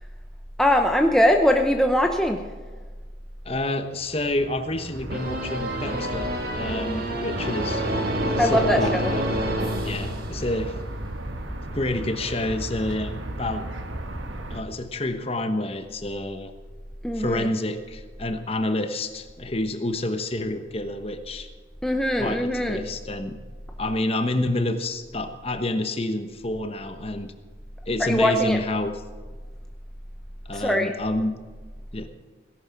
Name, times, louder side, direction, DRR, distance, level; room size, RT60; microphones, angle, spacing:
voice 1, 0.6-2.4 8.4-9.1 17.0-17.5 21.8-22.9 28.0-28.6 30.5-30.9, equal, 5° left, 3 dB, 0.8 m, -21 dB
voice 2, 3.4-7.8 8.4-9.2 9.8-10.8 11.7-13.7 14.5-16.5 17.1-21.5 22.2-23.4 23.8-27.3 27.9-29.0 30.4-31.3 31.9-32.1, left 1 dB, 30° left, 8 dB, 1.1 m, -28 dB
sound 1, 3.8-14.6, right 1 dB, 85° right, 1.4 m, -36 dB
sound 2, 5.1-10.7, right 1 dB, 50° right, 2.2 m, -28 dB
17.5 x 11.0 x 5.9 m, 1.4 s
head